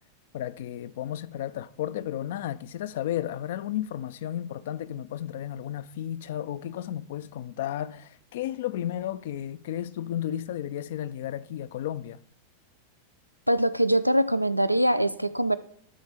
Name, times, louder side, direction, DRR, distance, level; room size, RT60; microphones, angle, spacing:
voice 1, 0.3-12.2, left 11 dB, 55° left, 0.4 m, -33 dB
voice 2, 13.5-15.6, right 1 dB, 90° right, 0.3 m, -23 dB
11.5 x 4.3 x 4.9 m
figure-of-eight pair, 90°, 0 cm